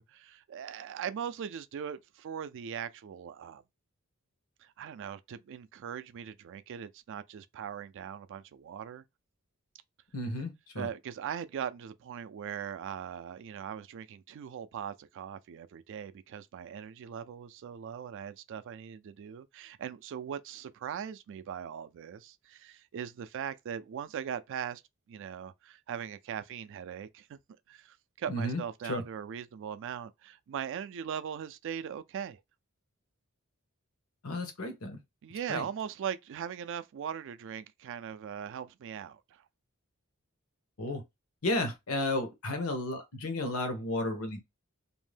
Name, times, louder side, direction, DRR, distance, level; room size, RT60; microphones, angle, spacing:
voice 1, 0.0-3.6 4.6-9.0 10.8-24.8 25.1-27.4 27.7-32.4 35.2-39.4, right 8 dB, 60° right, 0.3 m, -40 dB
voice 2, 10.1-10.9 28.3-29.0 34.2-35.0 35.5-35.6 40.8-41.0 41.4-44.4, left 2 dB, 80° left, 0.9 m, -33 dB
2.6 x 2.1 x 3.2 m
head